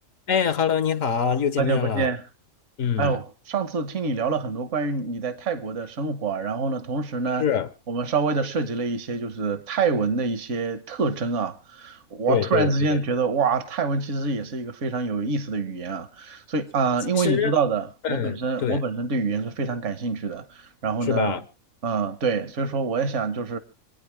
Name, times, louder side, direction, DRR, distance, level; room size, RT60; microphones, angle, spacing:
voice 1, 0.3-2.1 2.8-3.2 7.4-7.7 12.3-13.0 17.1-17.5 18.0-18.8 21.0-21.4, left 8 dB, 75° left, 1.3 m, -24 dB
voice 2, 1.6-2.2 3.0-7.5 7.9-21.3 21.8-23.6, right 4 dB, 65° right, 1.5 m, -26 dB
27.5 x 9.5 x 3.4 m
omnidirectional pair, 1.4 m